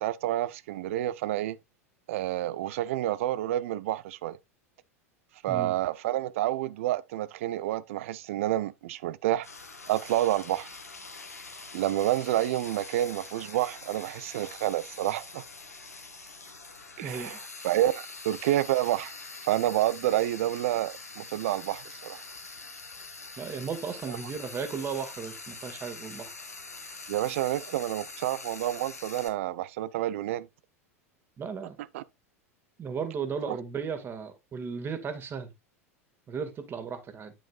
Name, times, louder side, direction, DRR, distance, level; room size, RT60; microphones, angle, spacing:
voice 1, 0.0-1.6 2.1-4.4 5.4-9.5 9.9-10.7 11.7-15.4 17.0-19.1 19.4-22.2 24.1-24.2 27.1-30.5 31.9-32.0 33.5-33.6, right 14 dB, 60° right, 0.6 m, -29 dB
Frying (food), 9.4-29.3, left 3 dB, 90° left, 1.5 m, -44 dB
voice 2, 17.0-17.3 23.4-26.3 31.4-31.8 32.8-35.5 36.3-37.3, right 6 dB, 30° right, 1.8 m, -35 dB
9.3 x 7.8 x 2.4 m
figure-of-eight pair, 85°, 8 cm